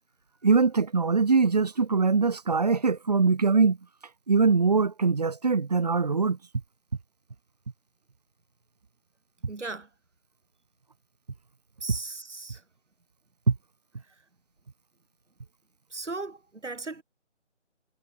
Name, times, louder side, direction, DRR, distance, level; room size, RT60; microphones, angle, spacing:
voice 1, 0.4-3.8 4.3-6.4 13.5-13.6, right 4 dB, 35° right, 1.8 m, -22 dB
voice 2, 9.5-9.9 11.8-12.6 15.9-17.0, right 3 dB, 75° right, 4.7 m, -37 dB
figure-of-eight pair, 170°, 36 cm